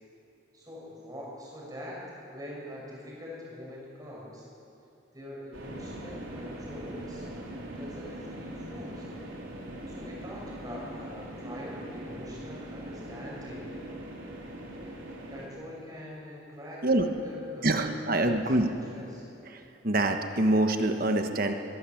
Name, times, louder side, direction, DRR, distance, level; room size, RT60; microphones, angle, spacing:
voice 1, 0.5-2.0 2.3-4.5 5.1-7.2 7.7-9.0 9.9-13.8 14.9-15.0 15.3-18.5 18.9-19.2, left 1 dB, 20° right, -4 dB, 6.6 m, -44 dB
sound 1, 5.5-15.5, right 1 dB, 75° right, 4.3 m, -41 dB
voice 2, 17.6-18.7 19.5-21.5, right 2 dB, 45° right, 5 dB, 1.2 m, -25 dB
22.5 x 16.0 x 7.8 m, 2.8 s
head